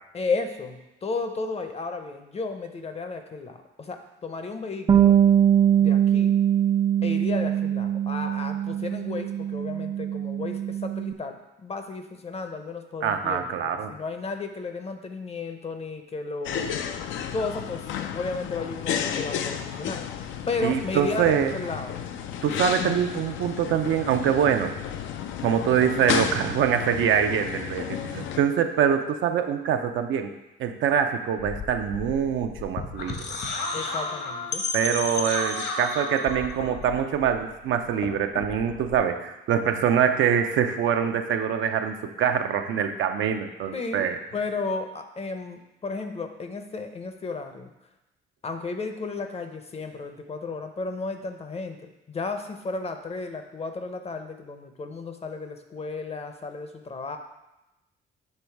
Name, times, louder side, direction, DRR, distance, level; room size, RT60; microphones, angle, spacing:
voice 1, 0.1-5.2 5.8-6.4 7.0-13.6 13.9-16.7 17.3-17.8 18.1-20.0 20.5-22.0 33.7-34.7 43.7-47.7 48.4-57.2, left 3 dB, 30° left, 7 dB, 0.6 m, -33 dB
Bass guitar, 4.9-11.1, right 10 dB, 25° right, 0.4 m, -22 dB
voice 2, 13.0-13.9 20.6-21.5 22.4-24.7 25.4-30.3 30.6-33.2 34.7-44.2, right 8 dB, 75° right, 6 dB, 0.5 m, -24 dB
sound 1, 16.5-28.4, left 8 dB, 80° left, 0.4 m, -32 dB
sound 2, 31.4-37.6 37.9-39.0, left 3 dB, 60° left, 1.1 m, -33 dB
6.7 x 3.1 x 4.6 m, 0.95 s
cardioid pair, 90°, 20 cm